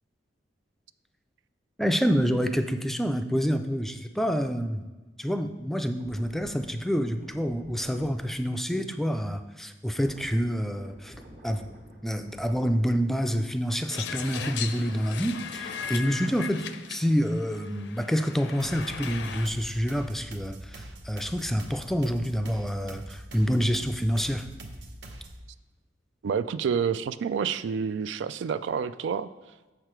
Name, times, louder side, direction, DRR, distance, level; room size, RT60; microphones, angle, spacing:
voice 1, 1.8-4.8 5.2-11.1 11.4-11.6 12.0-24.5, equal, ahead, 7 dB, 0.3 m, -27 dB
sound 1, 6.0-13.5 13.7-17.4 17.7-18.0, equal, 50° right, 1.2 m, -51 dB
sound 2, 13.9-19.5, left 7 dB, 75° left, 0.5 m, -38 dB
sound 3, 18.6-25.5, right 1 dB, 75° right, 0.9 m, -44 dB
voice 2, 26.2-29.3, right 6 dB, 90° right, 14 dB, 0.3 m, -28 dB
6.7 x 6.6 x 4.5 m, 1.2 s
head